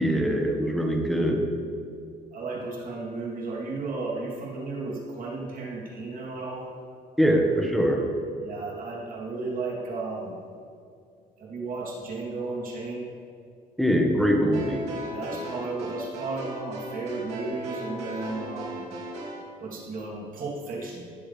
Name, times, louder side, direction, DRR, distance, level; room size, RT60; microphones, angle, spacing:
voice 1, 0.0-1.4 7.2-8.0 13.8-14.9, equal, ahead, 0 dB, 1.6 m, -23 dB
voice 2, 2.3-6.7 8.4-10.4 11.4-13.1 15.1-19.0 19.6-21.1, right 3 dB, 55° right, -4 dB, 3.1 m, -34 dB
sound 1, 14.5-19.5, right 1 dB, 80° right, 3.0 m, -37 dB
18.0 x 7.3 x 3.4 m, 2.4 s
cardioid pair, 110°, 17 cm